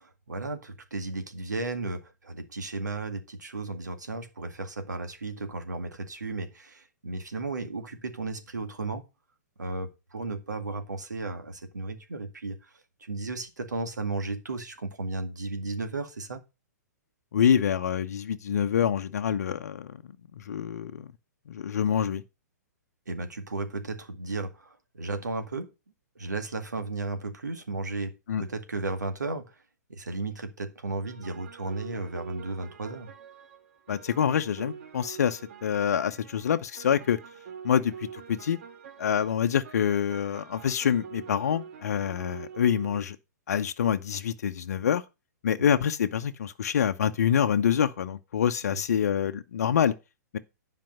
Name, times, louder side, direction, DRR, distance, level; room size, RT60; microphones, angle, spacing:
voice 1, 0.0-9.0 9.6-16.4 23.1-25.7 26.2-28.1 28.4-29.6 29.9-33.1, right 3 dB, 80° right, 2.1 m, -34 dB
voice 2, 17.3-20.0 20.4-21.1 21.5-22.2 28.3-28.4 33.9-37.2 37.6-38.6 39.0-43.2 43.5-45.0 45.4-49.9 50.3-50.4, left 8 dB, 60° left, 0.8 m, -26 dB
sound 1, 31.0-43.0, right 7 dB, 50° right, 1.9 m, -46 dB
10.5 x 5.2 x 6.5 m
figure-of-eight pair, 115°, 9 cm